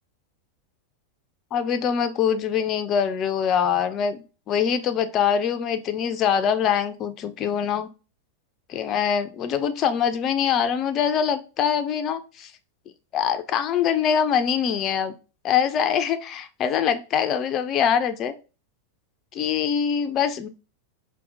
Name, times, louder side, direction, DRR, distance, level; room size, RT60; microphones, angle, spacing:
voice 1, 1.5-7.9 8.7-12.5 13.1-15.1 15.4-18.3 19.3-20.5, left 8 dB, 30° left, 9 dB, 0.3 m, -23 dB
4.1 x 2.1 x 2.5 m, 0.32 s
figure-of-eight pair, 90°, 0 cm